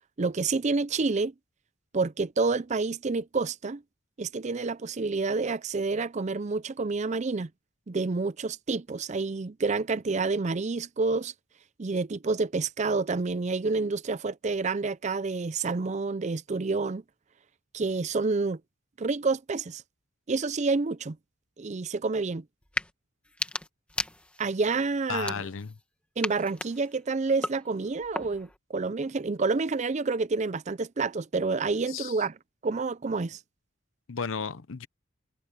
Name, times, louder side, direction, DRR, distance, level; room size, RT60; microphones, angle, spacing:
voice 1, 0.2-1.3 1.9-3.8 4.2-7.5 7.9-11.3 11.8-17.0 17.7-18.6 19.0-19.8 20.3-21.2 21.6-22.4 24.4-25.5 26.2-32.4 32.6-33.4, right 3 dB, 35° right, 0.5 m, -28 dB
sound 1, 22.6-22.9 23.2-24.6 25.1-25.8 26.2-28.6, left 1 dB, 5° left, 1.7 m, -36 dB
voice 2, 25.1-25.8 31.9-32.2 34.1-34.9, left 6 dB, 75° left, 0.7 m, -34 dB
head